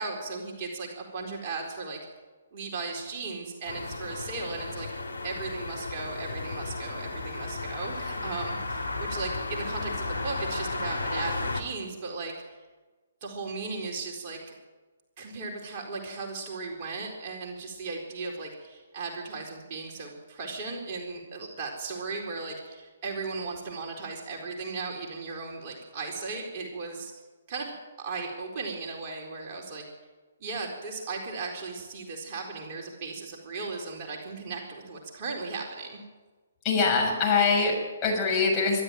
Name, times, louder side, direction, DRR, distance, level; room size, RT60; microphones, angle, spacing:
voice 1, 0.0-2.0 2.5-4.9 5.2-12.6 13.2-14.5 15.2-27.1 27.5-29.8 30.4-36.0, right 3 dB, 35° right, 0 dB, 4.3 m, -36 dB
sound 1, 3.7-11.6, left 3 dB, 80° left, 2.7 m, -34 dB
voice 2, 36.6-38.8, left 4 dB, 20° left, -1 dB, 6.6 m, -24 dB
24.5 x 12.5 x 9.2 m, 1.3 s
figure-of-eight pair, 130°, 0 cm